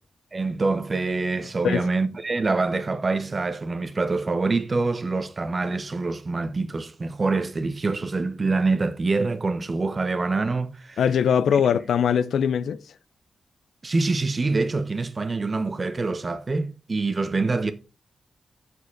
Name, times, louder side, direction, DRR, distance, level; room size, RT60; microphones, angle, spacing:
voice 1, 0.3-11.0 13.8-17.7, right 3 dB, 30° right, 1.0 m, -25 dB
voice 2, 11.0-12.8, left 8 dB, 85° left, 0.6 m, -21 dB
7.5 x 6.6 x 4.8 m
wide cardioid pair, 140°, 0 cm